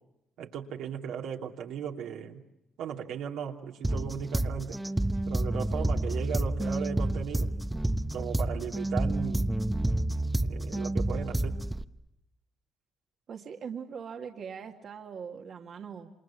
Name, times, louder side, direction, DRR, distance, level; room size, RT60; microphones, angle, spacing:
voice 1, 0.4-2.4 2.8-4.8 5.3-7.5 8.1-9.5 10.4-11.6, right 8 dB, 90° right, 0 dB, 2.7 m, -37 dB
sound 1, 3.8-11.8, right 1 dB, 10° right, 1.0 m, -29 dB
voice 2, 13.3-16.1, right 7 dB, 60° right, 3 dB, 1.9 m, -41 dB
29.0 x 26.5 x 7.1 m, 0.86 s
cardioid pair, 90°, 0 cm